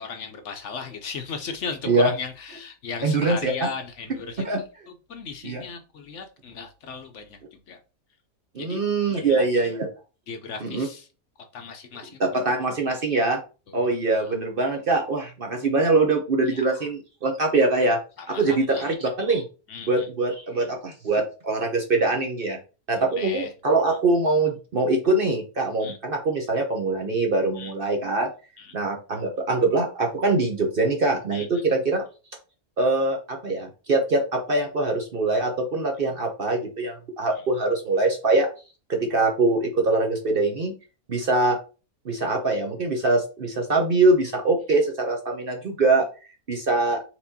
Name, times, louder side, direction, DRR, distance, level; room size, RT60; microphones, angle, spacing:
voice 1, 0.0-4.4 5.1-7.8 8.6-8.8 9.1-9.7 10.3-11.1 11.5-12.3 13.7-14.3 16.5-16.9 18.2-18.9 19.7-20.1 23.2-23.5 25.8-26.0 27.6-27.7 28.6-28.7 31.3-31.6, left 5 dB, 60° left, 6 dB, 0.9 m, -37 dB
voice 2, 3.0-3.5 4.4-4.6 5.4-5.6 8.5-9.9 10.6-10.9 12.3-13.4 13.7-18.0 18.3-19.4 19.9-22.6 22.9-28.3 28.7-32.0 32.8-38.5 38.9-40.7 41.1-41.6 42.0-46.1 46.5-47.0, right 2 dB, 50° right, 2 dB, 0.8 m, -23 dB
4.4 x 4.0 x 2.7 m, 0.33 s
omnidirectional pair, 1.5 m